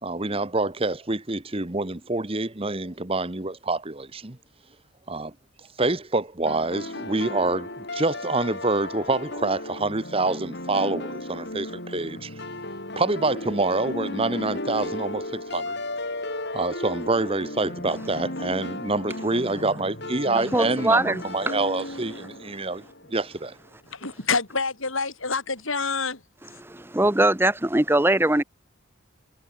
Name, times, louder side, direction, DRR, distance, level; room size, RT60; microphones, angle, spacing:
voice 1, 0.0-4.4 5.1-5.3 5.8-12.3 13.0-15.8 16.5-22.8 23.1-23.5, right 2 dB, 25° right, 1.2 m, -26 dB
sound 1, 6.5-23.3, left 1 dB, 50° left, 7.1 m, -35 dB
voice 2, 20.5-21.2 21.5-21.6 26.6-28.4, right 1 dB, 10° right, 0.9 m, -21 dB
voice 3, 23.9-26.2 26.5-26.6, left 4 dB, 70° left, 5.4 m, -27 dB
head